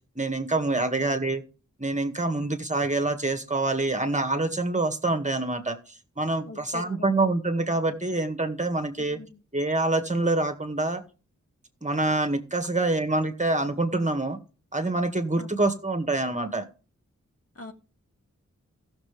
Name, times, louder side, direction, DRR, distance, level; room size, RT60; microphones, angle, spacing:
voice 1, 0.2-1.4 1.8-9.2 9.5-11.0 11.8-14.4 14.7-16.6, right 2 dB, 25° right, 7 dB, 1.9 m, -26 dB
voice 2, 6.5-7.1 9.0-9.4 15.4-15.6 17.5-17.7, left 3 dB, 50° left, 5 dB, 1.7 m, -43 dB
15.5 x 7.0 x 3.4 m, 0.34 s
cardioid pair, 50°, 30 cm